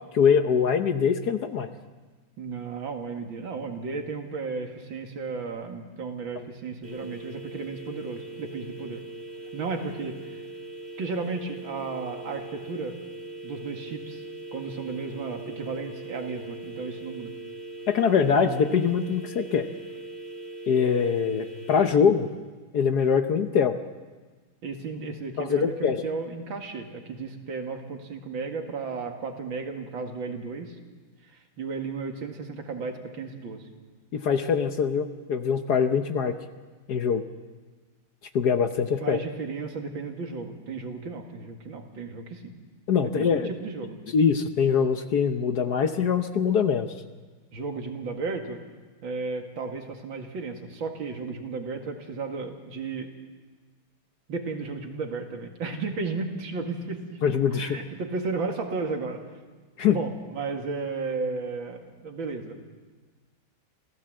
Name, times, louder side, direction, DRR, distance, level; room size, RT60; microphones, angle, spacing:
voice 1, 0.1-1.7 6.4-6.5 17.9-19.7 20.7-22.3 22.7-23.7 25.4-26.0 34.1-36.3 36.9-37.2 38.3-39.2 42.9-43.5 44.1-46.9 57.2-57.8 59.8-60.0, left 6 dB, 60° left, 8 dB, 1.3 m, -23 dB
voice 2, 2.4-9.0 9.5-10.4 11.0-13.0 13.4-14.2 14.5-17.3 24.6-30.8 31.2-33.7 39.0-42.5 43.2-44.0 47.5-48.6 49.0-53.1 54.3-57.2 57.5-59.2 59.9-62.6, right 4 dB, 70° right, 4 dB, 2.7 m, -34 dB
sound 1, 6.8-21.9, right 2 dB, 30° right, 3.3 m, -40 dB
27.0 x 16.0 x 7.7 m, 1.4 s
omnidirectional pair, 2.2 m